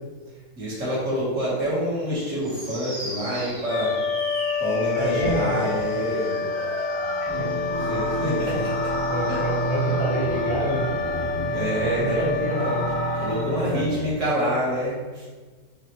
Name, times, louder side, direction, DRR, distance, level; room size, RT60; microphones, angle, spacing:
voice 1, 0.6-3.9 4.6-6.4 7.8-8.7 9.3-9.4 11.5-12.3 13.1-15.2, equal, 55° right, -8 dB, 1.5 m, -27 dB
sound 1, 2.4-13.7, equal, 35° right, 0.8 m, -35 dB
sound 2, 3.6-14.2, left 3 dB, 80° left, 0.5 m, -29 dB
voice 2, 4.9-5.6 7.2-7.5 8.5-8.6 9.1-10.9 11.8-12.9 13.7-13.9, right 1 dB, 85° right, -11 dB, 1.9 m, -28 dB
Psytrance riff, 6.6-14.0, right 1 dB, 20° left, 0.5 m, -31 dB
4.2 x 3.1 x 2.8 m, 1.4 s
omnidirectional pair, 1.7 m